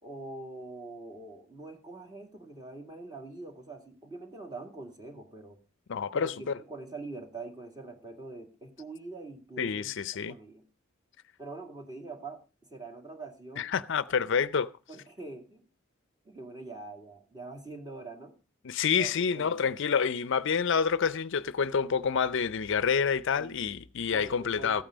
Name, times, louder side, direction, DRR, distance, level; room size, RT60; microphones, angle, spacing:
voice 1, 0.0-5.6 6.1-9.9 10.3-10.6 11.4-12.4 12.7-13.7 14.9-15.6 16.2-18.3 18.9-19.6 23.3-23.6 24.1-24.8, right 3 dB, 20° right, 2.2 m, -44 dB
voice 2, 5.9-6.5 9.6-10.4 13.6-14.7 18.6-24.8, left 6 dB, 65° left, 0.5 m, -28 dB
14.5 x 8.9 x 5.0 m
head